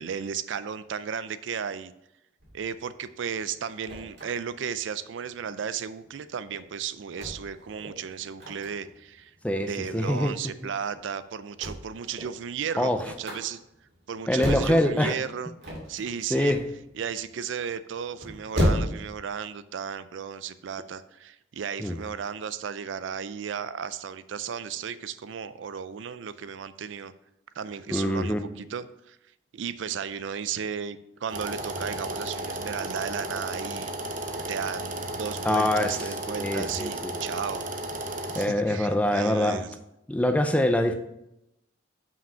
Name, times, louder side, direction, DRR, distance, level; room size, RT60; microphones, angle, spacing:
voice 1, 0.0-1.9 2.5-9.3 9.7-13.6 14.1-15.5 15.9-16.5 16.9-27.1 27.6-29.2 29.5-33.9 34.4-37.7 38.3-39.7, right 7 dB, 80° right, 14 dB, 0.4 m, -34 dB
sound 1, 2.4-19.2, equal, 60° right, 2.1 m, -34 dB
voice 2, 9.4-10.3 12.8-13.0 14.3-15.1 16.3-16.6 21.8-21.9 27.9-28.4 35.4-36.0 36.3-37.1 38.3-39.6 40.1-40.9, left 1 dB, 5° left, 7 dB, 0.5 m, -24 dB
sound 2, 31.3-38.5, right 1 dB, 45° right, 0.7 m, -34 dB
5.7 x 5.1 x 5.5 m, 0.83 s
head